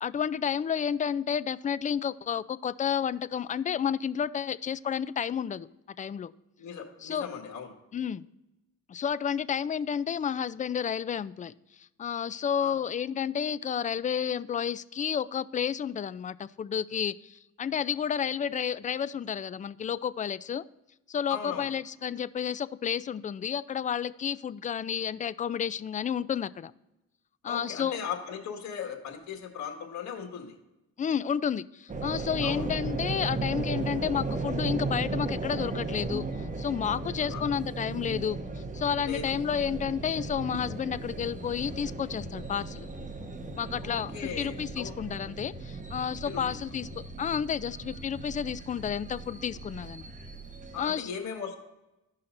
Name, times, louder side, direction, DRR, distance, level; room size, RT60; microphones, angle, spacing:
voice 1, 0.0-5.7 6.0-6.3 7.0-7.3 7.9-8.2 8.9-11.5 12.0-20.6 21.1-26.7 27.4-28.0 31.0-36.2 36.6-38.4 38.7-42.9 43.6-46.9 47.2-50.0 50.8-51.1, left 8 dB, 25° left, 17 dB, 0.3 m, -31 dB
voice 2, 6.6-7.7 12.6-12.8 21.3-21.7 27.4-30.6 32.4-32.7 37.2-37.4 39.0-39.4 43.8-45.0 46.3-46.4 50.7-51.6, left 7 dB, 65° left, 3 dB, 1.9 m, -38 dB
sound 1, 31.9-50.9, right 3 dB, 25° right, 1.2 m, -36 dB
15.0 x 5.7 x 2.6 m, 0.96 s
cardioid pair, 90°, 30 cm